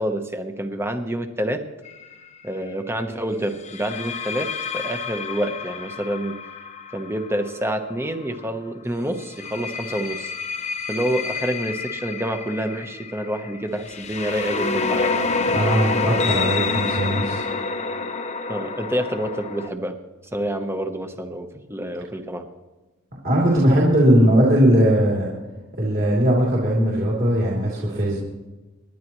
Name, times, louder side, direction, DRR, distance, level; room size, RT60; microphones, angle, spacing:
voice 1, 0.0-1.6 2.4-6.3 6.9-10.3 10.9-15.2 18.5-19.9 20.3-22.4, right 1 dB, 10° right, 6 dB, 1.0 m, -27 dB
sound 1, 1.8-2.1 3.6-8.4 9.2-19.7, left 4 dB, 30° left, 0.9 m, -28 dB
voice 2, 15.5-17.4 23.2-25.3 25.8-28.2, equal, 45° right, -4 dB, 3.3 m, -19 dB
28.5 x 11.0 x 3.1 m, 1.1 s
head